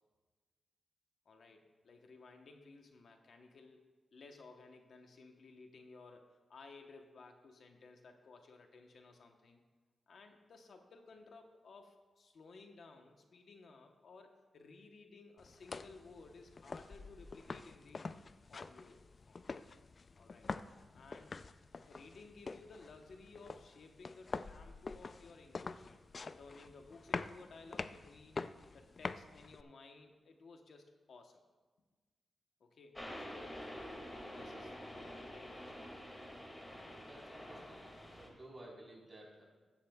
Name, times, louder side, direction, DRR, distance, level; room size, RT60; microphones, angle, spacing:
voice 1, 1.2-3.8 4.1-9.6 10.1-18.1 18.5-19.4 20.1-20.5 20.9-21.4 21.9-26.0 26.4-28.4 28.7-31.4 32.6-33.6 34.3-35.9, left 3 dB, 70° left, 4 dB, 1.0 m, -57 dB
sound 1, 15.4-29.6, left 4 dB, 40° left, 0.3 m, -46 dB
sound 2, 32.9-38.3, equal, 15° left, 2.1 m, -48 dB
voice 2, 36.7-37.9 38.2-39.4, right 1 dB, 20° right, -4 dB, 3.8 m, -55 dB
16.0 x 11.0 x 2.3 m, 1.3 s
wide cardioid pair, 105°, 0 cm